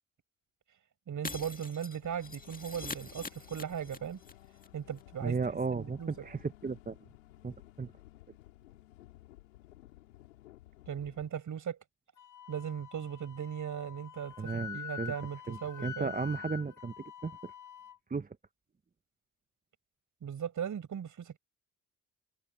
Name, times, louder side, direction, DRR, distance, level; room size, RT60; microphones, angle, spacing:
voice 1, 1.1-4.2 4.7-5.4 5.7-6.1 10.9-11.8 12.5-16.1 20.2-21.4, right 8 dB, 50° right, 6.8 m, -38 dB
Shatter, 1.2-4.3 4.6-4.7 5.0-5.1, left 3 dB, 20° left, 2.1 m, -44 dB
sound 1, 2.0-11.3, left 16 dB, 85° left, 4.7 m, -56 dB
voice 2, 5.2-7.0 7.4-7.9 14.4-15.1 15.5-17.5 18.1-18.3, right 4 dB, 20° right, 1.1 m, -35 dB
Wind instrument woodwind instrument, 12.2-18.0, left 8 dB, 55° left, 5.0 m, -46 dB
hypercardioid pair, 45°, 38 cm